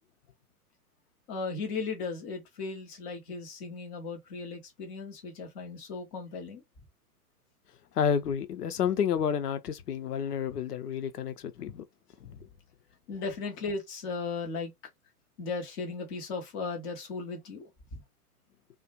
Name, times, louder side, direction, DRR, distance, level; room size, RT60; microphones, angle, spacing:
voice 1, 1.3-6.6 13.1-14.7 15.4-17.7, left 4 dB, 15° left, 0.4 m, -36 dB
voice 2, 8.0-11.8 12.2-12.3, left 8 dB, 80° left, 0.6 m, -30 dB
2.4 x 2.1 x 2.8 m
figure-of-eight pair, 115°, 46 cm